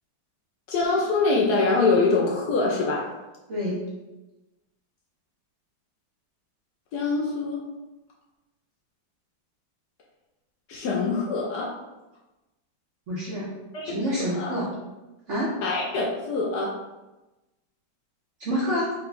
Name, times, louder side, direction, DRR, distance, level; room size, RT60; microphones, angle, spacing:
voice 1, 0.7-3.1 6.9-7.6 10.7-11.8 13.7-13.9 14.2-14.6 15.6-16.8, left 3 dB, 70° left, -2 dB, 1.0 m, -24 dB
voice 2, 3.5-3.8 13.1-13.5 13.8-14.7 15.3-15.6 18.4-18.9, equal, 55° right, -6 dB, 0.8 m, -27 dB
4.5 x 2.3 x 3.9 m, 1.1 s
omnidirectional pair, 2.1 m